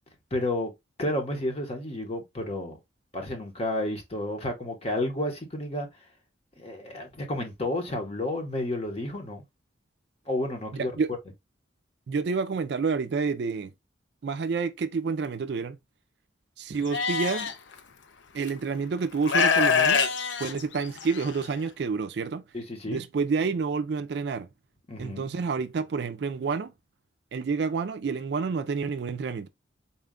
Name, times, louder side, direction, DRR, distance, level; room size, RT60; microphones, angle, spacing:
voice 1, 0.3-0.7 1.0-2.8 3.1-5.9 6.6-9.4 10.3-10.9 22.5-23.0 24.9-25.3, left 1 dB, 30° left, 0.9 m, -31 dB
voice 2, 10.8-11.1 12.1-13.7 14.2-15.8 16.6-17.5 18.3-20.1 20.4-22.4 22.9-24.5 25.0-26.7 27.3-29.5, right 5 dB, 60° right, 0.4 m, -29 dB
Livestock farm animals working animals, 16.9-17.5 18.5-18.6 19.2-21.3, left 6 dB, 70° left, 0.6 m, -24 dB
4.2 x 2.3 x 3.6 m
head